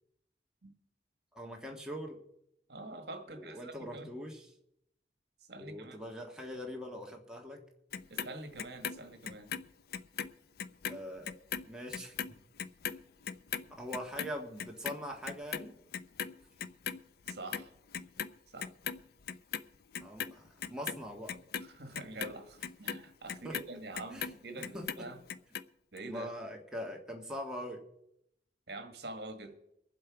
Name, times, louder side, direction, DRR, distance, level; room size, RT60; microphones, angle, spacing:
voice 1, 1.3-2.2 3.3-4.4 5.6-7.6 10.9-11.3 11.7-12.4 12.9-13.0 13.8-15.8 20.0-21.4 23.4-23.6 24.1-24.3 24.7-25.1 26.1-27.8, equal, 5° right, 0 dB, 1.6 m, -42 dB
voice 2, 2.7-4.1 5.5-6.0 8.1-9.5 17.3-17.7 18.5-18.7 21.6-25.2 25.9-26.3 28.7-29.5, right 2 dB, 65° right, 7 dB, 1.6 m, -45 dB
Clock, 7.9-10.3 10.6-17.0 17.3-18.3 18.6-19.6 19.9-24.4 24.6-25.6 26.0-26.1, left 7 dB, 60° left, 0.5 m, -39 dB
23.0 x 7.7 x 4.8 m, 0.80 s
head